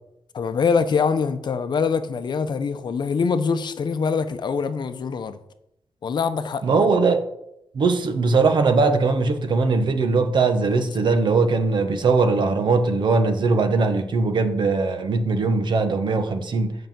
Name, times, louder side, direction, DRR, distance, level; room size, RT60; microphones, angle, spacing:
voice 1, 0.3-5.4 6.0-6.9, left 5 dB, 55° left, 0.7 m, -24 dB
voice 2, 6.6-7.2 7.7-16.8, right 4 dB, 60° right, 1.0 m, -20 dB
8.1 x 5.6 x 7.5 m
wide cardioid pair, 155°, 9 cm